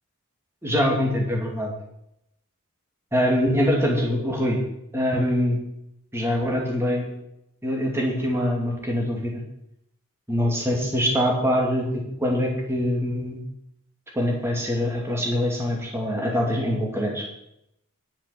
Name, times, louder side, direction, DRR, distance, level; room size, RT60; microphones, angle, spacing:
voice 1, 0.6-1.7 3.1-4.6 4.9-5.6 6.1-7.1 7.6-9.4 10.3-13.4 14.1-17.2, equal, 10° right, -2 dB, 2.4 m, -24 dB
10.5 x 7.7 x 7.0 m, 0.81 s
head